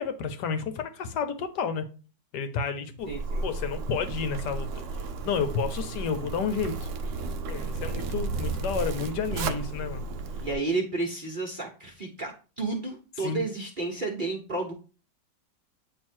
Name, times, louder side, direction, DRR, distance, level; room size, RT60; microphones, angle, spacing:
voice 1, 0.0-1.9 2.3-3.1 3.4-4.7 5.2-6.9 7.5-10.0 13.2-13.5, left 6 dB, 65° left, 1.3 m, -31 dB
Zipper (clothing), 3.0-10.5, right 3 dB, 90° right, 0.6 m, -33 dB
voice 2, 3.1-3.4 10.4-14.7, right 3 dB, 35° right, 1.0 m, -31 dB
8.8 x 3.1 x 4.4 m
omnidirectional pair, 2.0 m